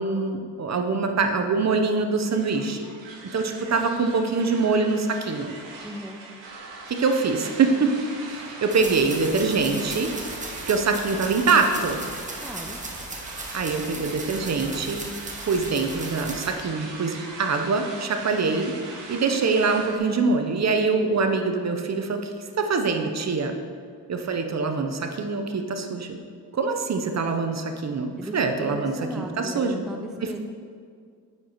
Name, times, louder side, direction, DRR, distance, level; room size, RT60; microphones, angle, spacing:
voice 1, 0.0-2.9 3.3-5.6 6.9-8.0 8.3-10.1 10.7-12.0 13.5-15.0 15.5-18.7 19.1-22.3 22.6-23.6 24.1-26.2 26.5-29.8 30.2-30.4, right 4 dB, 35° right, 5 dB, 0.7 m, -24 dB
sound 1, 2.3-20.0, right 3 dB, 75° right, 1.3 m, -41 dB
voice 2, 5.8-6.2 12.4-12.8 28.2-30.4, equal, ahead, 3 dB, 0.4 m, -37 dB
sound 2, 8.7-16.5, right 2 dB, 15° right, 1.0 m, -37 dB
9.1 x 4.6 x 3.0 m, 2.1 s
supercardioid pair, 60°, 45 cm